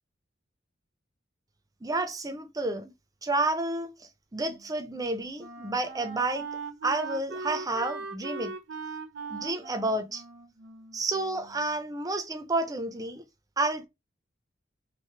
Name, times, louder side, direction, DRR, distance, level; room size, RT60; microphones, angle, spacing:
voice 1, 1.8-2.9 3.2-6.5 6.8-8.5 9.3-10.2 10.9-13.2 13.6-13.9, right 2 dB, 20° right, 0.6 m, -30 dB
Wind instrument woodwind instrument, 4.4-11.7, right 4 dB, 75° right, 0.9 m, -40 dB
3.2 x 2.7 x 4.4 m
head